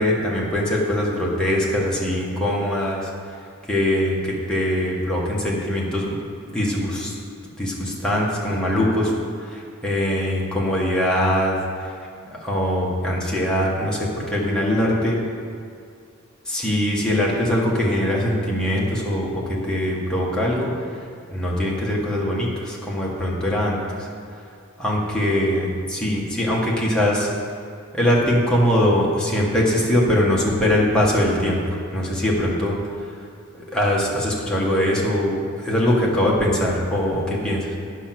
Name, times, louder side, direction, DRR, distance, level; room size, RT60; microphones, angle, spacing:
voice 1, 0.0-3.1 3.7-6.2 6.5-7.1 7.6-9.1 9.5-11.6 12.4-15.2 16.5-20.7 21.3-24.1 24.8-27.3 27.9-31.6 31.9-32.8 33.7-37.8, left 1 dB, 5° left, -5 dB, 1.7 m, -22 dB
9.9 x 6.3 x 6.1 m, 2.4 s
head